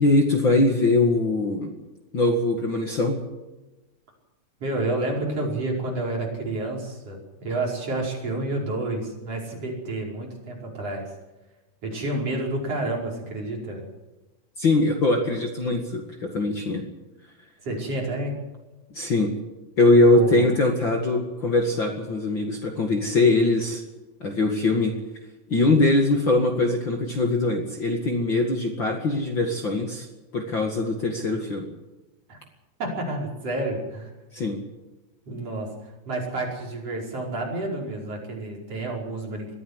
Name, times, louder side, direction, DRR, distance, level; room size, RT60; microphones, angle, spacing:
voice 1, 0.0-1.7 2.1-3.2 14.6-16.8 18.9-19.3 19.8-23.8 24.2-25.0 25.5-30.1 30.3-31.7 34.3-34.6, left 2 dB, 40° left, 3 dB, 2.4 m, -22 dB
voice 2, 4.6-11.0 11.8-13.9 17.6-18.3 20.1-20.5 32.3-32.4 32.8-34.1 35.3-35.7 36.1-39.5, right 2 dB, 45° right, -1 dB, 6.1 m, -29 dB
22.0 x 15.0 x 8.1 m, 1.1 s
omnidirectional pair, 3.8 m